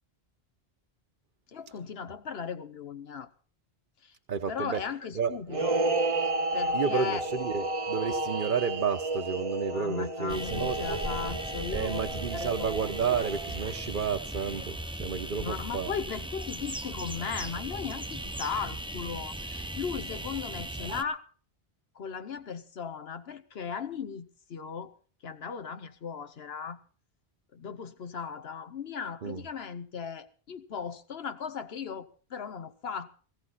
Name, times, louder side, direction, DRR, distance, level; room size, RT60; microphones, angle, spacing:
voice 1, 1.5-3.3 4.0-4.1 4.5-5.8 6.5-7.2 9.7-12.8 15.3-21.3 21.9-24.9 25.2-26.8 27.5-33.1, left 6 dB, 75° left, 11 dB, 1.1 m, -37 dB
voice 2, 4.3-4.8 5.1-5.3 6.7-10.8 11.7-15.9 29.2-29.4, right 6 dB, 55° right, 6 dB, 1.0 m, -31 dB
sound 1, 5.5-14.1, right 2 dB, 35° right, 0.9 m, -32 dB
sound 2, 10.3-21.0, right 1 dB, 5° right, 0.7 m, -38 dB
17.5 x 15.0 x 4.1 m, 0.40 s
omnidirectional pair, 1.1 m